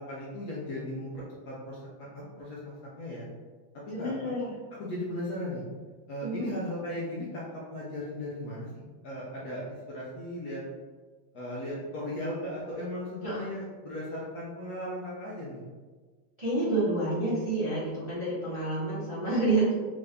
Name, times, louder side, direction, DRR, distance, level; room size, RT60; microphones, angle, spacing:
voice 1, 0.0-3.3 4.0-4.2 4.7-5.6 6.1-10.6 11.3-15.6, left 1 dB, 65° left, -6 dB, 1.1 m, -37 dB
voice 2, 3.9-4.5 6.2-6.5 13.2-13.5 16.4-19.7, right 2 dB, 20° right, -11 dB, 1.0 m, -29 dB
3.7 x 2.6 x 3.3 m, 1.4 s
omnidirectional pair, 2.2 m